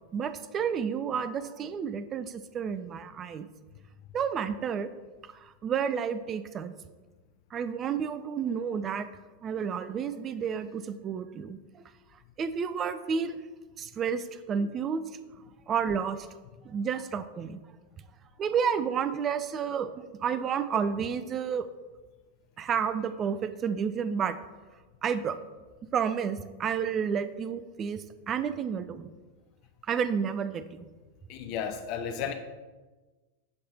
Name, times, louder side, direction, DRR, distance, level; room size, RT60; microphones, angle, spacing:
voice 1, 0.1-3.5 4.1-4.9 5.4-6.7 7.5-9.1 9.4-11.8 12.4-13.4 13.8-15.1 15.7-16.3 16.6-17.6 18.4-19.9 20.2-21.7 22.6-24.4 25.0-25.4 25.9-29.1 29.9-30.9, right 7 dB, 25° right, 0.4 m, -30 dB
voice 2, 31.3-32.3, left 7 dB, 45° left, 0.4 m, -33 dB
7.7 x 3.3 x 4.1 m
figure-of-eight pair, 90°, 0 cm